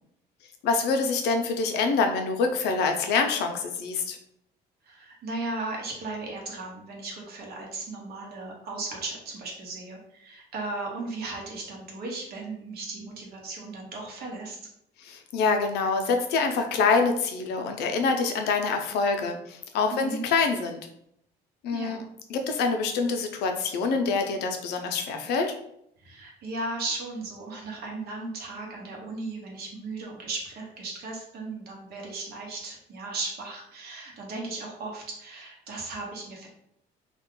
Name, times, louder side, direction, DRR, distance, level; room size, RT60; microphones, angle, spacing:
voice 1, 0.6-4.2 15.0-20.8 21.6-22.0 22.3-25.5, left 4 dB, 75° left, 5 dB, 0.5 m, -26 dB
voice 2, 4.8-14.6 19.9-20.2 21.7-22.0 26.0-36.5, right 3 dB, 70° right, 0 dB, 1.0 m, -36 dB
2.4 x 2.2 x 3.6 m, 0.75 s
cardioid pair, 110°, 17 cm